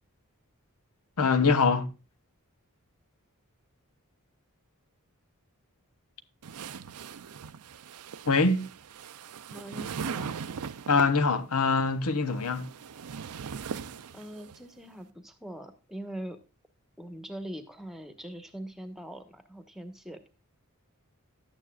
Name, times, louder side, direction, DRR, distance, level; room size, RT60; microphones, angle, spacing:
voice 1, 1.2-1.9 8.3-8.7 10.9-12.7, left 4 dB, 75° left, 1.0 m, -24 dB
sound 1, 6.4-11.1 12.1-14.6, right 6 dB, 85° right, 0.6 m, -40 dB
voice 2, 9.5-10.4 14.1-16.4 17.0-20.3, right 1 dB, ahead, 1.1 m, -42 dB
12.0 x 9.1 x 2.3 m
head